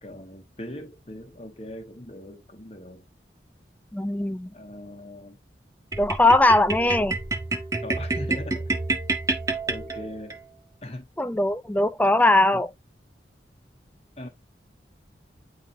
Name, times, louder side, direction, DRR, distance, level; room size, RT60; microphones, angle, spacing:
voice 1, 0.0-3.0 4.4-5.4 7.8-8.7 9.7-10.4 10.8-11.1 12.5-12.6 14.2-14.3, left 1 dB, 35° left, 1.3 m, -40 dB
voice 2, 3.9-4.5 6.0-7.2 11.2-12.7, left 2 dB, 10° left, 0.3 m, -20 dB
sound 1, 5.9-10.4, right 3 dB, 20° right, 0.7 m, -28 dB
9.4 x 3.7 x 2.7 m
head